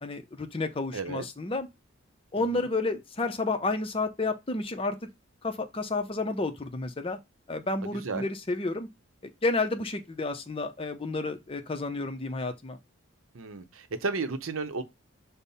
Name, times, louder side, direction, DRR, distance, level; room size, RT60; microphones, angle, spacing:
voice 1, 0.0-1.7 2.3-5.0 5.4-7.2 7.5-8.9 9.4-12.8, left 3 dB, 25° left, 0.5 m, -31 dB
voice 2, 0.9-1.3 2.5-2.7 7.9-8.3 13.3-14.8, right 4 dB, 80° right, 0.7 m, -33 dB
5.3 x 2.1 x 4.0 m
head